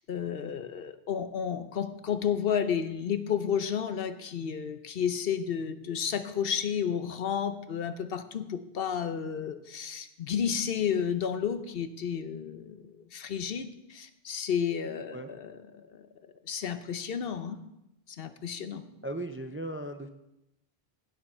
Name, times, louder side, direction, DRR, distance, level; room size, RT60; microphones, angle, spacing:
voice 1, 0.1-15.5 15.9-16.1 16.4-17.6 18.2-18.8, left 8 dB, 70° left, 10 dB, 1.0 m, -32 dB
voice 2, 19.0-20.1, right 1 dB, 20° right, 7 dB, 0.4 m, -37 dB
16.0 x 7.0 x 4.4 m, 0.89 s
omnidirectional pair, 1.0 m